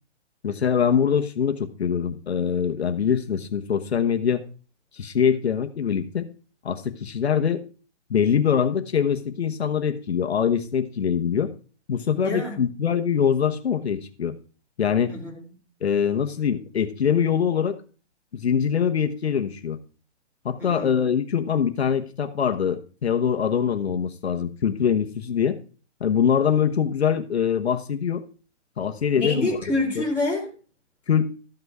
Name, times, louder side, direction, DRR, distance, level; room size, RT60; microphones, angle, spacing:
voice 1, 0.4-4.4 4.9-6.3 6.6-7.6 8.1-11.5 11.9-14.3 14.8-15.1 15.8-17.8 18.3-19.8 20.4-25.6 26.0-28.2 28.8-29.5 30.0-30.1 31.1-31.3, left 7 dB, 65° left, 1.1 m, -23 dB
voice 2, 12.2-12.6 15.1-15.5 20.6-20.9 29.1-30.5, left 2 dB, 5° right, 2.4 m, -27 dB
13.5 x 6.0 x 4.7 m
hypercardioid pair, 180°, 35 cm